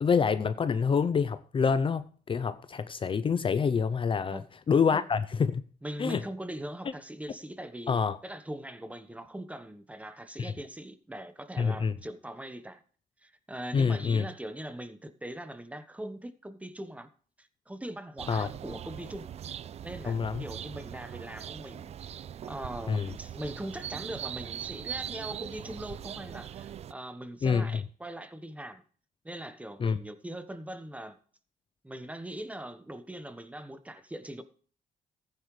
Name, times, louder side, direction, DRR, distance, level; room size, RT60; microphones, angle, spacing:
voice 1, 0.0-4.4 4.7-5.6 6.0-6.2 7.9-8.2 10.4-10.5 11.6-11.9 13.7-14.2 18.3-18.5 20.1-20.4 22.9-23.1 27.4-27.7 29.8-30.0, left 6 dB, 35° left, 0.6 m, -26 dB
voice 2, 5.8-12.8 13.2-17.1 17.4-19.3 19.8-21.9 22.5-28.8 29.2-31.2 31.8-34.4, right 1 dB, 10° right, 1.2 m, -41 dB
sound 1, 18.2-26.9, right 9 dB, 50° right, 0.4 m, -41 dB
14.5 x 9.8 x 3.2 m
cardioid pair, 100°, 14 cm